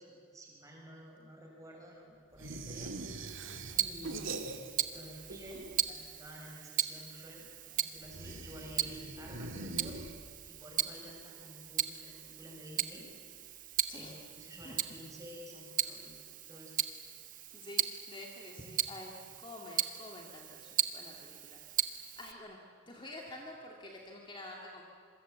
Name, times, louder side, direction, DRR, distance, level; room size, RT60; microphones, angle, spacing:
voice 1, 0.0-3.3 3.7-4.6 4.9-10.1 10.4-13.1 13.9-16.2 16.5-16.7 21.9-22.1, equal, 15° right, -1 dB, 6.8 m, -51 dB
sound 1, 2.4-5.0 5.2-6.1 8.0-10.6, right 2 dB, 65° right, 1.9 m, -43 dB
Tick-tock, 3.3-22.3, right 11 dB, 40° right, 0.9 m, -38 dB
voice 2, 17.5-22.6 22.9-24.8, left 1 dB, 25° left, 0 dB, 2.2 m, -48 dB
26.5 x 24.0 x 8.2 m, 2.3 s
head